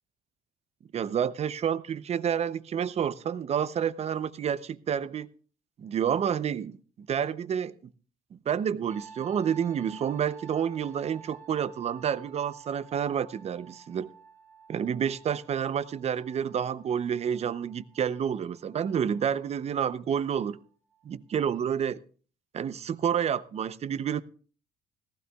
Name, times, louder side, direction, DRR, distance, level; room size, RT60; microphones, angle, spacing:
voice 1, 0.9-5.3 5.8-7.7 8.3-14.1 14.7-20.6 21.0-22.0 22.5-24.2, right 8 dB, 40° right, 0.6 m, -29 dB
sound 1, 8.9-20.6 20.9-21.3, right 6 dB, 15° left, 5.3 m, -52 dB
18.0 x 15.0 x 2.3 m
cardioid pair, 110°, 17 cm